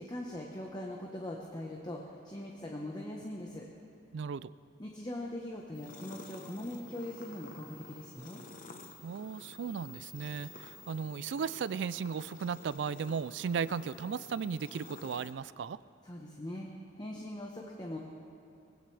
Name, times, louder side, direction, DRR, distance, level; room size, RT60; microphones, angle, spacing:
voice 1, 0.0-3.7 4.8-8.4 16.0-16.7 17.0-18.0, left 1 dB, 25° left, -1 dB, 1.1 m, -41 dB
voice 2, 4.1-4.5 9.0-15.8, right 6 dB, 70° right, 17 dB, 0.4 m, -36 dB
sound 1, 5.7-15.3, left 2 dB, 45° left, 1.0 m, -51 dB
22.0 x 16.5 x 3.4 m, 2.6 s
head